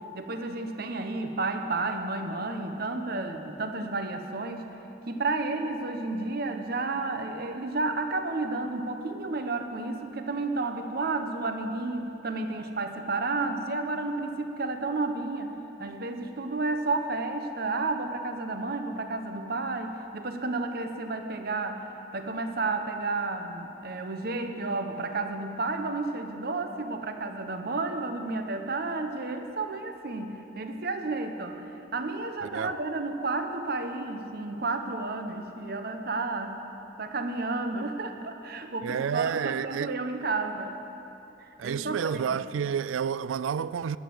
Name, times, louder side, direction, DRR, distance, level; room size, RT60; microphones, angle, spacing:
voice 1, 0.0-4.7 5.1-15.5 15.8-21.8 22.1-36.6 37.0-40.8 41.4-42.4, right 3 dB, 50° right, 0.9 m, -31 dB
voice 2, 32.4-32.7 38.8-39.9 41.6-44.0, right 7 dB, 85° right, 0.3 m, -30 dB
12.0 x 10.5 x 7.7 m
head